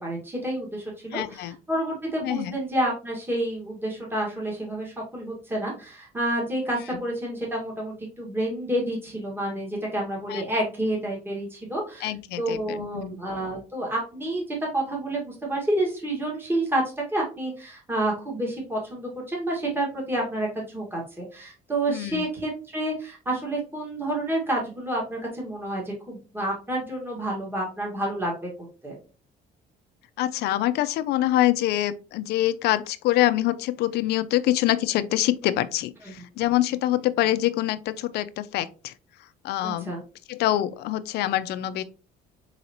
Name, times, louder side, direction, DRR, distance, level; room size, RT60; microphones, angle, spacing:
voice 1, 0.0-12.1 12.4-16.8 17.1-28.5 28.8-29.0 36.0-36.2 39.6-40.0, right 1 dB, 15° right, 1.7 m, -29 dB
voice 2, 1.1-1.5 2.2-2.6 10.3-10.4 12.0-13.2 21.9-22.2 30.2-38.9 39.4-39.9 40.3-41.8, left 14 dB, 75° left, 0.4 m, -25 dB
4.0 x 3.8 x 2.9 m
cardioid pair, 110°, 17 cm